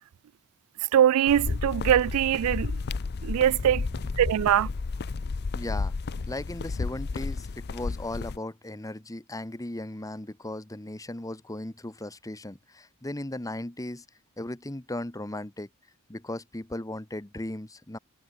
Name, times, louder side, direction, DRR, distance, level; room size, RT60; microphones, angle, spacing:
voice 1, 0.9-2.7 3.2-3.8 4.2-4.7, right 10 dB, 70° right, 0.3 m, -22 dB
sound 1, 1.3-8.4, left 4 dB, 50° left, 0.5 m, -32 dB
voice 2, 3.8-4.3 5.5-5.9 6.3-14.0 14.4-15.7 16.1-18.0, left 1 dB, 15° left, 1.2 m, -37 dB
head